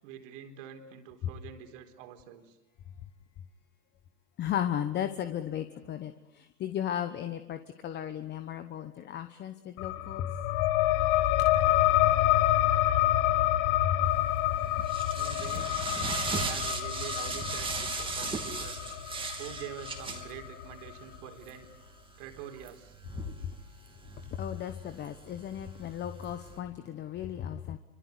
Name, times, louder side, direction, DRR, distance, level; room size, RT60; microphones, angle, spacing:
voice 1, 0.0-2.6 15.1-15.9 16.3-18.8 19.4-21.7 22.2-22.9, right 9 dB, 50° right, 5 dB, 4.2 m, -45 dB
voice 2, 4.4-10.3 13.8-14.1 24.3-27.8, left 10 dB, 20° left, 9 dB, 1.1 m, -35 dB
sound 1, 9.8-20.9, left 14 dB, 40° left, 1.6 m, -27 dB
sound 2, 14.2-26.6, right 4 dB, 10° right, 3.1 m, -39 dB
28.0 x 25.5 x 8.3 m, 0.92 s
hypercardioid pair, 130°, 50 cm